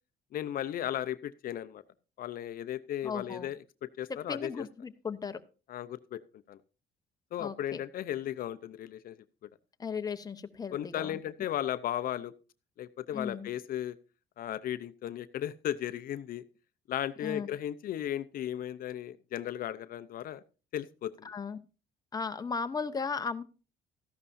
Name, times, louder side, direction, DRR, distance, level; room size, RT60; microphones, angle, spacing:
voice 1, 0.3-1.8 2.2-4.6 5.7-6.2 6.5-6.6 7.3-9.2 10.7-12.3 12.8-14.0 14.4-16.4 16.9-20.4 20.7-21.3, left 11 dB, 60° left, 12 dB, 0.6 m, -36 dB
voice 2, 3.0-3.5 4.3-5.4 7.4-7.8 9.8-11.2 13.1-13.5 17.2-17.5 21.2-21.6 22.1-23.4, left 5 dB, 20° left, 8 dB, 0.9 m, -36 dB
14.0 x 11.0 x 2.6 m, 0.33 s
cardioid pair, 110°, 17 cm